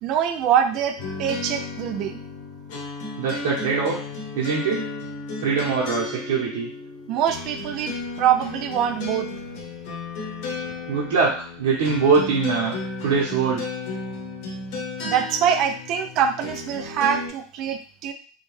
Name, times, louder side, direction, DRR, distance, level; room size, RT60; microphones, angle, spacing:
voice 1, 0.0-2.2 7.1-9.3 15.0-18.1, right 8 dB, 40° right, 8 dB, 0.3 m, -24 dB
sound 1, 1.0-17.3, left 3 dB, 55° left, 0.8 m, -34 dB
voice 2, 3.2-4.0 4.3-4.8 5.4-6.7 10.9-12.7 13.0-13.6, right 5 dB, 80° right, -5 dB, 0.8 m, -22 dB
2.7 x 2.2 x 3.1 m, 0.42 s
supercardioid pair, 165°, 0 cm